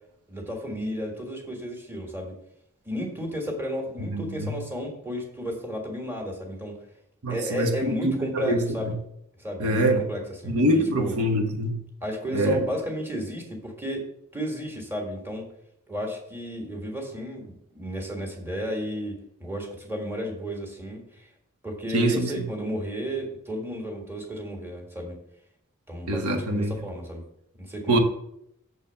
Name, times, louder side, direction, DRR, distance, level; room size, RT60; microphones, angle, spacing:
voice 1, 0.3-2.3 2.8-6.8 7.3-8.9 9.4-11.1 12.0-15.4 15.9-21.3 21.6-25.2 25.9-27.2 27.6-28.0, equal, 10° right, 1.6 m, -33 dB
voice 2, 4.1-4.6 7.2-8.9 9.6-10.0 10.4-11.8 12.3-12.7 21.9-22.5 26.1-26.8 27.9-28.0, right 1 dB, 80° right, 1.1 m, -24 dB
7.0 x 4.3 x 6.7 m
head